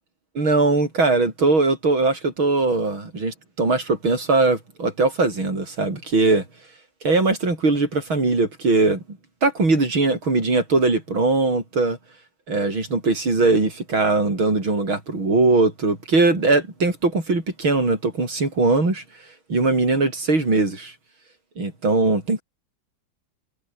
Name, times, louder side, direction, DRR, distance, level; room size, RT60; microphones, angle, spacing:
voice 1, 0.4-6.5 7.0-12.0 12.5-19.0 19.5-20.9 21.6-22.4, right 3 dB, 70° right, 7.4 m, -20 dB
omnidirectional pair, 2.3 m